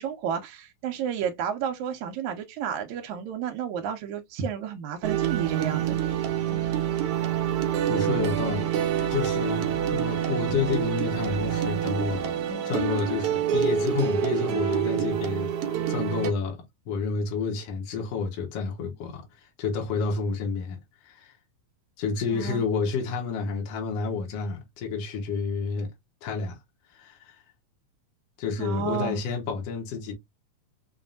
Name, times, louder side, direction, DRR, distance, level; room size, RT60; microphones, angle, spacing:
voice 1, 0.0-6.0 22.3-22.7 28.6-29.2, right 8 dB, 85° right, 2.0 m, -31 dB
sound 1, 5.0-16.3, right 9 dB, 70° right, 1.5 m, -27 dB
voice 2, 7.9-8.7 9.1-12.4 12.7-15.5 15.9-16.6 16.9-21.3 22.0-25.9 26.2-26.6 26.9-27.4 28.4-30.1, left 5 dB, 65° left, 2.0 m, -30 dB
5.3 x 2.6 x 2.5 m
omnidirectional pair, 3.4 m